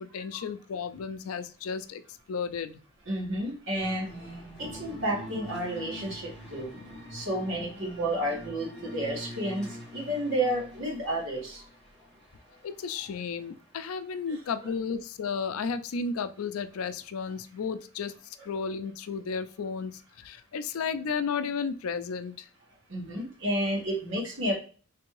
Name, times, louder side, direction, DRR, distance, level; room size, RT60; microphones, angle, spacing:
voice 1, 0.0-2.0 2.3-2.8 12.6-22.5, left 5 dB, 80° left, 11 dB, 0.4 m, -33 dB
voice 2, 3.1-4.1 4.6-6.7 7.1-9.7 9.9-11.6 22.9-24.5, right 1 dB, 60° right, -3 dB, 1.6 m, -31 dB
sound 1, 3.8-13.3, equal, 5° left, 2.0 m, -44 dB
3.4 x 3.3 x 3.1 m, 0.39 s
head